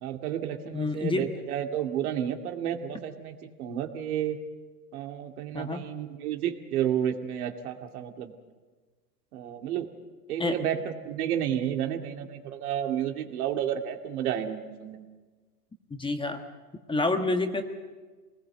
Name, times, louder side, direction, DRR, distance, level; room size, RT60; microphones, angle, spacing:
voice 1, 0.0-4.4 4.9-8.3 9.3-9.9 10.3-15.1, right 10 dB, 65° right, 5 dB, 2.3 m, -31 dB
voice 2, 0.7-1.3 5.5-5.8 10.4-10.6 15.9-16.4 16.9-17.6, left 3 dB, 10° left, 7 dB, 1.3 m, -28 dB
24.5 x 19.5 x 7.9 m, 1.4 s
hypercardioid pair, 105°, 48 cm